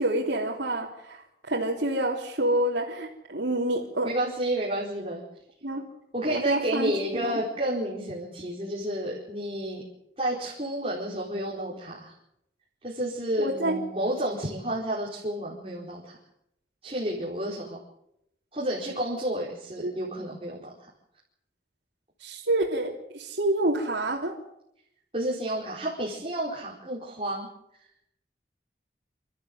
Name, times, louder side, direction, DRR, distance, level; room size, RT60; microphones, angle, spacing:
voice 1, 0.0-4.1 5.6-5.8 6.3-6.9 7.2-7.4 13.4-13.8 19.8-19.9 22.2-24.3, right 1 dB, 85° right, -6 dB, 3.3 m, -27 dB
voice 2, 4.0-5.2 6.1-9.8 10.2-12.1 12.8-16.2 16.8-17.8 18.5-20.6 25.1-27.5, right 1 dB, 30° right, -6 dB, 4.7 m, -30 dB
28.0 x 14.0 x 7.9 m, 0.80 s
head